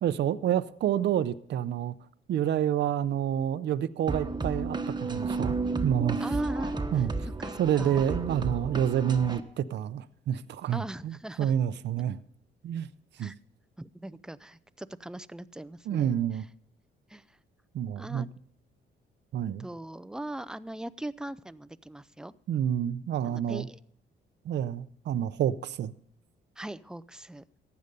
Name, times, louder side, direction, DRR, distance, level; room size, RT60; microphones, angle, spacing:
voice 1, 0.0-2.0 2.3-5.6 5.8-6.2 6.9-7.1 7.6-12.2 12.6-12.9 13.2-13.3 15.9-16.4 17.7-18.3 19.3-19.7 22.5-23.7 24.4-25.9, right 10 dB, 60° right, 0.6 m, -28 dB
sound 1, 4.1-9.4, right 3 dB, 20° right, 1.1 m, -32 dB
voice 2, 6.2-7.1 7.4-8.0 10.7-11.5 13.2-13.4 13.8-16.2 17.1-17.2 18.0-18.3 19.6-22.3 23.2-23.8 26.6-27.4, right 1 dB, 5° right, 0.4 m, -40 dB
15.0 x 9.5 x 5.3 m
cardioid pair, 90°, 20 cm